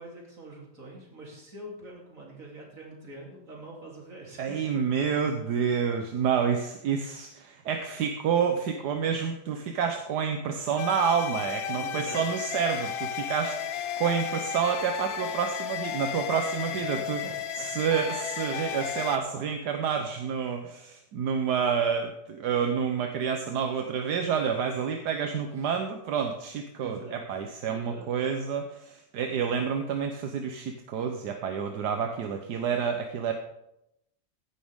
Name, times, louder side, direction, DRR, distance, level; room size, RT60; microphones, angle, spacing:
voice 1, 0.0-5.5 11.8-12.2 16.7-17.3 17.6-17.7 25.5-25.7 26.8-27.2 27.7-28.1, right 1 dB, 55° right, -2 dB, 3.8 m, -45 dB
voice 2, 4.4-17.2 17.6-33.3, right 7 dB, 80° right, 5 dB, 1.5 m, -29 dB
sound 1, 10.8-19.2, left 9 dB, 65° left, 1.2 m, -34 dB
15.0 x 11.5 x 3.7 m, 0.84 s
omnidirectional pair, 1.7 m